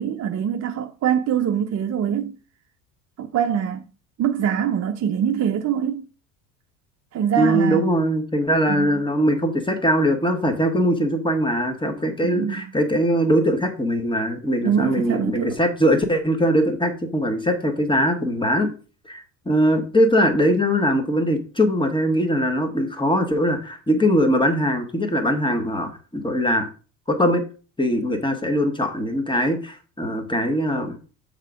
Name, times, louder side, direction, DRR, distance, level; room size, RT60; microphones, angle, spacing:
voice 1, 0.0-2.4 3.2-3.8 4.2-6.1 7.1-7.8 8.7-9.0 12.2-12.6 14.6-15.6, right 8 dB, 35° right, 0.6 m, -23 dB
voice 2, 7.4-18.7 19.1-26.7 27.1-27.4 27.8-30.9, equal, 10° left, 1.7 m, -21 dB
6.5 x 3.8 x 5.0 m
hypercardioid pair, 75°, 46 cm